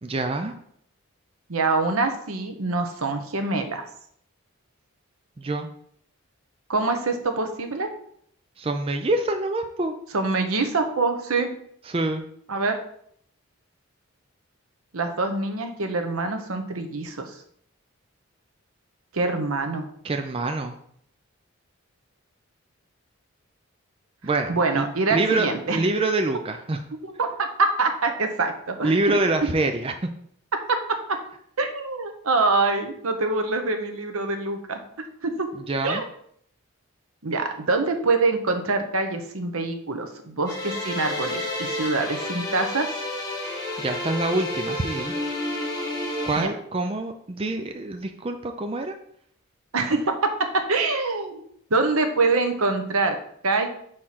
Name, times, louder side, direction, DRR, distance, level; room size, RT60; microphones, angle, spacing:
voice 1, 0.0-0.5 5.4-5.7 8.6-10.0 11.9-12.2 20.0-20.7 24.2-24.9 25.1-26.8 28.8-29.9 35.5-36.0 43.8-45.1 46.2-48.9, right 2 dB, 25° right, 5 dB, 0.4 m, -26 dB
voice 2, 1.5-3.9 6.7-7.9 10.1-11.5 12.5-12.8 14.9-17.3 19.1-19.8 24.5-25.8 27.0-29.1 30.7-30.8 31.1-31.2 31.6-34.8 35.2-35.5 35.8-36.0 37.2-42.9 46.4-46.5 49.7-50.0 50.5-51.4 51.7-53.2 53.4-53.7, right 3 dB, 85° right, 6 dB, 0.9 m, -25 dB
sound 1, 40.5-46.4, left 1 dB, 20° left, 1.4 m, -30 dB
4.8 x 4.5 x 5.7 m, 0.67 s
head